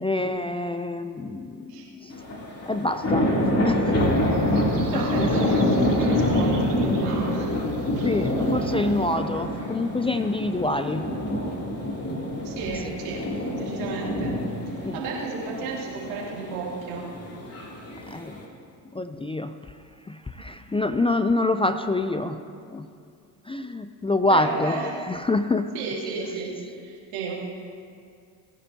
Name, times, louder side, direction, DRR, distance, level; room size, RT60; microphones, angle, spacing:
voice 1, 0.0-2.2 2.7-3.3 3.6-4.0 4.4-4.6 4.9-5.5 6.0-6.1 8.0-11.1 12.9-13.0 14.8-15.3 18.1-18.4 18.9-19.8 20.0-22.4 22.7-22.9 23.4-25.7 26.0-26.7, left 2 dB, 10° left, 9 dB, 0.4 m, -27 dB
sound 1, 2.1-18.4, left 1 dB, 30° left, 2.9 m, -26 dB
sound 2, 4.0-9.2, right 3 dB, 55° right, 1.8 m, -39 dB
voice 2, 4.9-7.5 12.4-14.3 14.7-17.1 24.3-24.9 25.7-27.3, right 5 dB, 80° right, -4 dB, 2.9 m, -33 dB
19.5 x 10.0 x 2.8 m, 2.3 s
hypercardioid pair, 60°, 49 cm